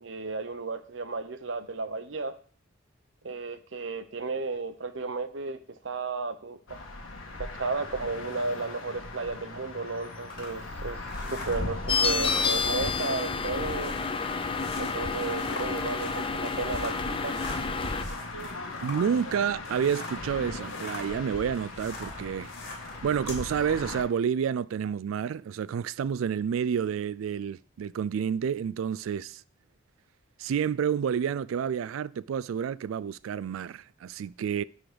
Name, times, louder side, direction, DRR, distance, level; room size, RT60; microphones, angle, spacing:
voice 1, 0.0-2.3 3.2-6.8 7.4-11.0 11.3-13.9 14.8-17.3, right 3 dB, 65° right, 0.8 m, -33 dB
sound 1, 6.7-24.0, left 2 dB, 80° left, 1.6 m, -39 dB
sound 2, 10.3-20.3 20.6-23.4, left 2 dB, 55° left, 2.7 m, -43 dB
sound 3, 11.9-18.0, left 5 dB, 25° left, 0.5 m, -30 dB
voice 2, 18.8-22.5 23.0-29.4 30.4-34.6, right 7 dB, 85° right, 0.3 m, -29 dB
10.5 x 4.0 x 5.0 m
head